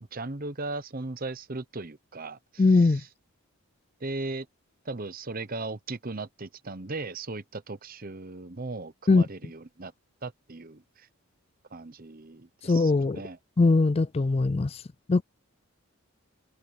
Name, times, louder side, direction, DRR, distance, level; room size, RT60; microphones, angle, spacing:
voice 1, 0.1-3.1 4.0-4.5 4.8-9.9 10.2-11.1 11.7-13.4, right 3 dB, 40° right, 1.0 m, -37 dB
voice 2, 2.6-3.0 9.1-9.2 12.6-13.2 13.6-14.8 15.1-15.2, left 3 dB, 30° left, 0.3 m, -21 dB
head